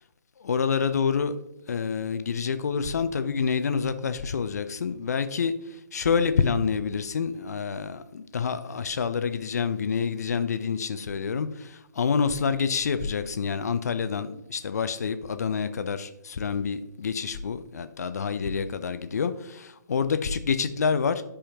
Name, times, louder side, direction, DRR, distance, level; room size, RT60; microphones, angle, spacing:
voice 1, 0.4-1.3 1.7-5.5 5.9-21.2, left 6 dB, 55° left, 0.6 m, -27 dB
11.5 x 5.0 x 2.9 m
figure-of-eight pair, 135°, 10 cm